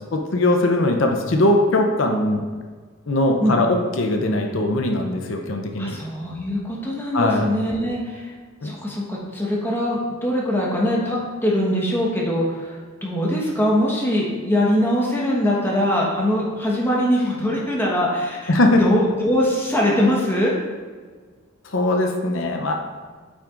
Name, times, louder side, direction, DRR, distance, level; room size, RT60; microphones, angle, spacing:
voice 1, 0.1-2.5 3.1-6.0 7.1-7.4 8.6-8.7 18.5-18.8 21.6-22.7, left 1 dB, 65° left, 3 dB, 0.7 m, -20 dB
voice 2, 5.8-8.3 8.6-20.5, equal, 10° left, -4 dB, 1.2 m, -22 dB
8.4 x 5.9 x 2.5 m, 1.5 s
head